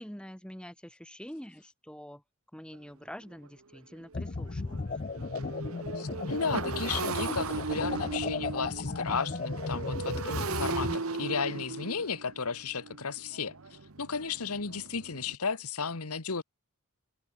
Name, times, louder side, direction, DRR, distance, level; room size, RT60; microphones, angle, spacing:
voice 1, 0.0-2.2 2.5-5.2, equal, 5° left, 2.5 m, -46 dB
Motorcycle, 2.7-2.8 3.3-3.5 3.7-15.3, right 4 dB, 75° right, 1.1 m, -37 dB
sound 1, 4.1-11.0, left 3 dB, 40° left, 0.6 m, -35 dB
voice 2, 5.9-16.4, left 5 dB, 90° left, 1.5 m, -34 dB
head